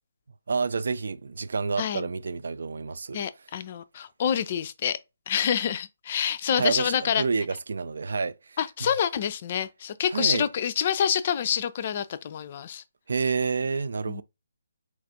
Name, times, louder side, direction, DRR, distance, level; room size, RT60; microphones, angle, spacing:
voice 1, 0.5-3.2 6.6-8.6 10.1-10.5 13.1-14.2, right 4 dB, 55° right, 0.3 m, -29 dB
voice 2, 1.8-2.1 3.1-5.0 5.3-7.2 8.6-12.8 14.1-14.2, left 8 dB, 35° left, 0.3 m, -27 dB
4.4 x 2.4 x 2.6 m
figure-of-eight pair, 140°, 0 cm